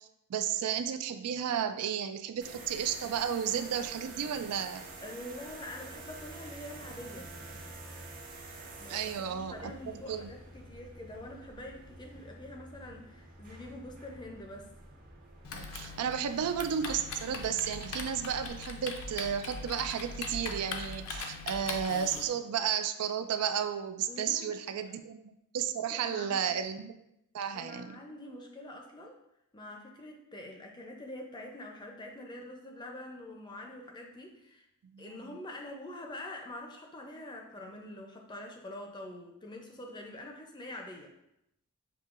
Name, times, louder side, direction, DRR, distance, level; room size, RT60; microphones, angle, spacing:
voice 1, 0.0-4.8 8.9-10.3 15.5-26.9 27.3-28.0 34.9-35.2, right 8 dB, 90° right, 9 dB, 0.4 m, -33 dB
sound 1, 2.4-18.5, right 2 dB, 40° right, 0.7 m, -49 dB
voice 2, 5.0-7.3 8.8-14.7 24.1-24.5 25.9-26.5 27.5-29.2 29.5-34.7 35.0-41.1, left 1 dB, 20° left, 2 dB, 0.5 m, -45 dB
Typing, 15.4-22.3, left 4 dB, 75° left, 0.5 m, -41 dB
6.8 x 2.7 x 2.4 m, 0.82 s
head